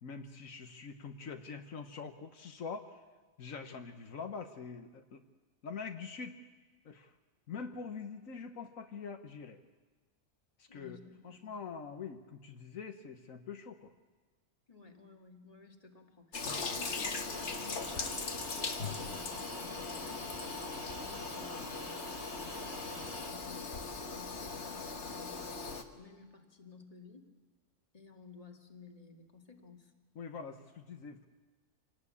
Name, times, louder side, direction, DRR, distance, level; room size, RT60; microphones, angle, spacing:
voice 1, 0.0-3.0 3.4-5.2 5.6-6.4 6.8-7.1 7.5-9.6 10.6-11.0 11.2-13.9 21.0-21.7 30.1-31.3, left 5 dB, 80° left, 6 dB, 1.6 m, -44 dB
voice 2, 10.7-11.5 14.7-20.3 20.8-25.5 26.0-27.3 27.9-29.9, left 4 dB, 30° left, 2 dB, 2.2 m, -55 dB
Toilet flush, 16.3-25.8, left 4 dB, 55° left, 1.7 m, -39 dB
sound 1, 17.3-23.3, right 1 dB, 55° right, 3.1 m, -47 dB
26.5 x 19.0 x 8.5 m, 1.3 s
omnidirectional pair, 1.4 m